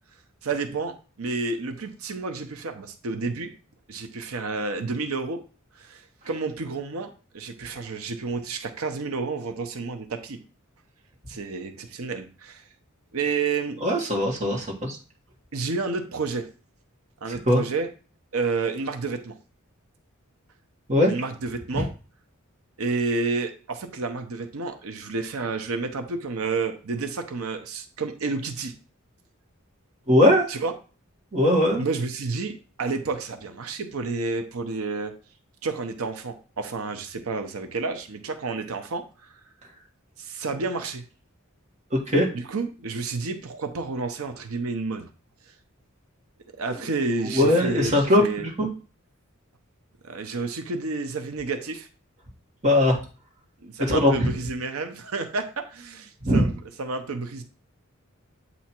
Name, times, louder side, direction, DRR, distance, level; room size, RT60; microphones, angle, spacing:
voice 1, 0.4-3.5 3.9-5.4 5.8-10.4 11.3-12.7 13.1-13.8 15.5-16.5 17.2-17.9 18.3-19.4 21.1-21.9 22.8-28.7 30.5-30.7 31.8-32.5 32.8-35.1 35.6-39.3 40.2-41.0 42.3-45.1 46.6-48.5 50.0-51.9 53.6-56.5 56.8-57.4, right 3 dB, 85° right, 7 dB, 0.8 m, -30 dB
voice 2, 13.8-15.0 17.3-17.6 20.9-21.1 21.7-21.8 30.1-30.5 31.3-31.8 41.9-42.3 47.3-48.7 52.6-53.0 53.9-54.3 56.2-56.5, left 1 dB, 35° right, 0 dB, 1.5 m, -20 dB
8.3 x 2.8 x 4.4 m, 0.36 s
head